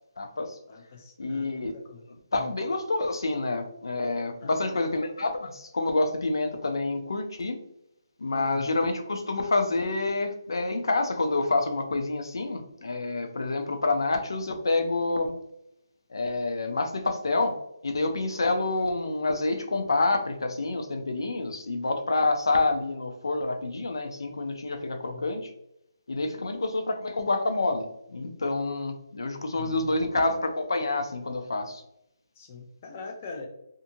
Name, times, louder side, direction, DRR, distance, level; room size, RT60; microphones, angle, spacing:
voice 1, 0.2-0.6 1.2-1.7 2.3-7.6 8.2-15.3 16.1-17.6 17.8-25.5 26.1-31.8, left 2 dB, 85° left, 6 dB, 0.5 m, -28 dB
voice 2, 0.7-2.0 2.4-2.5 4.4-5.0 8.3-8.7 24.9-25.3 26.3-26.6 29.6-30.2 32.4-33.5, left 4 dB, 25° left, 2 dB, 0.4 m, -44 dB
2.6 x 2.6 x 2.5 m, 0.81 s
hypercardioid pair, 165°, 2 cm